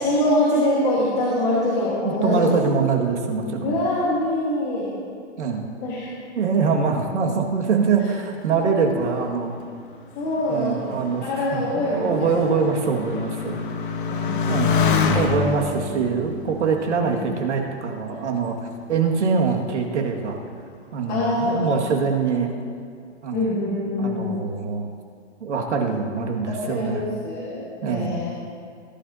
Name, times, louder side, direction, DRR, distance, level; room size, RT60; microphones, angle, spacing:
voice 1, 0.0-2.5 3.6-4.9 5.8-6.1 8.5-8.6 10.1-10.9 11.2-12.3 14.1-15.6 17.0-17.4 21.1-21.9 23.3-24.3 26.5-28.3, left 1 dB, 20° left, -7 dB, 1.6 m, -24 dB
voice 2, 2.0-3.8 5.4-5.7 6.4-9.5 10.5-13.6 14.5-14.7 15.1-18.6 18.9-20.4 20.9-22.5 23.2-23.4 24.0-24.9 25.4-27.0 27.8-28.2, right 5 dB, 80° right, 1 dB, 2.1 m, -23 dB
Motorcycle, 9.0-18.0 18.7-19.3, left 5 dB, 45° left, 1.2 m, -27 dB
19.0 x 11.0 x 2.8 m, 2.2 s
hypercardioid pair, 175°, 35 cm